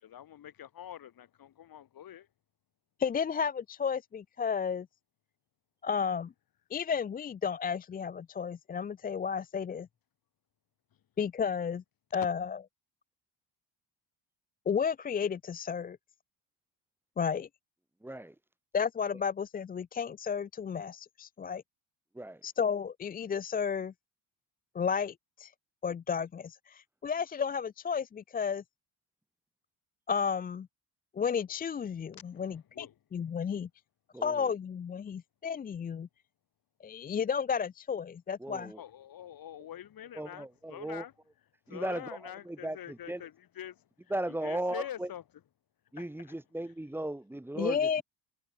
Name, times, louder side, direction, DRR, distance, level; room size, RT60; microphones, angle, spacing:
voice 1, 0.0-2.3 32.3-32.9 38.8-41.1 41.7-43.8 44.4-45.2 46.0-46.3, left 10 dB, 45° left, 6.5 m, -45 dB
voice 2, 3.0-4.9 5.8-6.3 6.7-9.9 11.2-11.8 12.1-12.6 14.7-16.0 17.2-17.5 18.7-21.6 22.4-23.9 24.7-25.5 25.8-28.6 30.1-30.7 31.1-32.9 33.1-33.7 34.2-36.1 36.8-38.7 47.6-48.0, left 6 dB, 20° left, 0.4 m, -32 dB
voice 3, 18.0-18.3 22.1-22.4 34.1-34.5 38.4-38.8 40.1-41.0 41.7-43.3 44.1-45.1 45.9-48.0, right 1 dB, 5° right, 2.9 m, -37 dB
cardioid pair, 175°, 46 cm